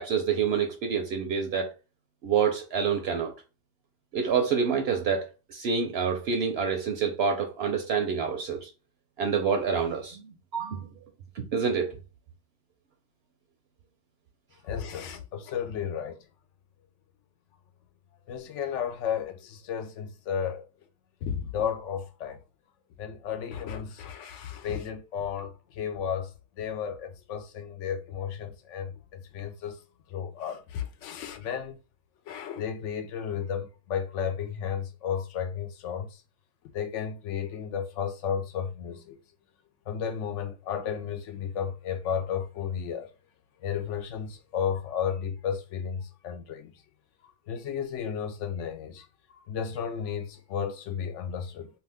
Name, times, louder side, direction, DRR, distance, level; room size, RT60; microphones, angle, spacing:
voice 1, 0.0-1.7 2.2-3.3 4.1-8.7 9.2-10.9 11.4-12.0, right 6 dB, 65° right, 0.7 m, -27 dB
voice 2, 14.6-16.2 18.3-20.6 21.2-22.4 23.0-26.3 26.6-29.8 30.1-31.8 32.3-36.2 36.7-39.2 39.9-43.1 43.6-46.7 47.5-49.1 49.5-51.7, left 8 dB, 75° left, 0.9 m, -33 dB
2.6 x 2.3 x 3.4 m
omnidirectional pair, 1.3 m